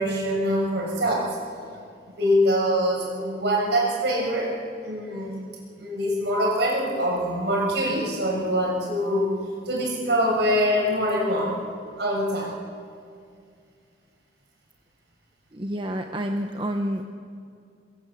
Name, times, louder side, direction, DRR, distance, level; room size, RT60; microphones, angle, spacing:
voice 1, 0.0-1.4 2.2-4.5 4.8-5.4 5.8-9.4 9.7-11.6 12.0-12.5, equal, 65° right, -1 dB, 7.2 m, -24 dB
voice 2, 15.5-17.0, equal, 25° right, 4 dB, 1.0 m, -28 dB
23.0 x 23.0 x 8.4 m, 2.2 s
head